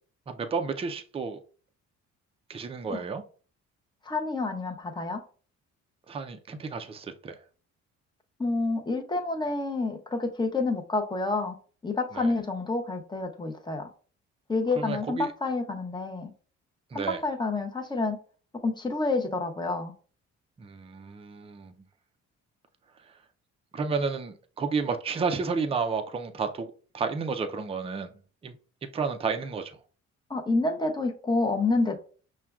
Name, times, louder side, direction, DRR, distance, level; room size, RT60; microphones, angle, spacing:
voice 1, 0.3-1.4 2.5-3.2 6.1-7.4 12.1-12.3 14.8-15.3 16.9-17.2 20.6-21.7 23.7-26.7 26.9-28.1 28.4-28.5 28.8-29.8, right 5 dB, 20° right, 0.4 m, -31 dB
voice 2, 4.0-5.2 8.4-11.6 11.8-13.9 14.5-16.3 16.9-18.2 18.6-19.9 30.3-32.0, left 3 dB, 15° left, 0.7 m, -28 dB
5.7 x 2.2 x 2.3 m
cardioid pair, 90°, 30 cm